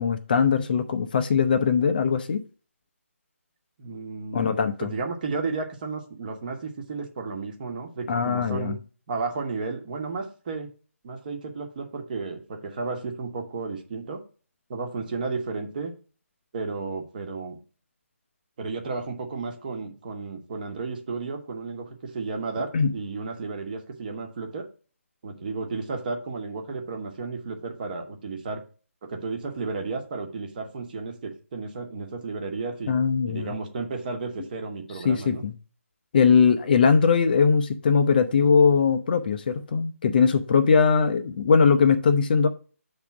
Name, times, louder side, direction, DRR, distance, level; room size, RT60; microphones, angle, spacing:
voice 1, 0.0-2.4 4.3-4.9 8.1-8.7 22.7-22.9 32.9-33.5 35.0-35.5 36.1-42.5, left 5 dB, 35° left, 8 dB, 0.6 m, -20 dB
voice 2, 3.8-8.8 9.1-10.7 11.0-14.2 14.7-15.9 16.5-17.6 18.6-24.7 25.2-28.6 29.0-32.9 33.3-35.4, right 4 dB, 35° right, 4 dB, 1.2 m, -33 dB
7.3 x 3.6 x 5.8 m, 0.37 s
figure-of-eight pair, 160°, 8 cm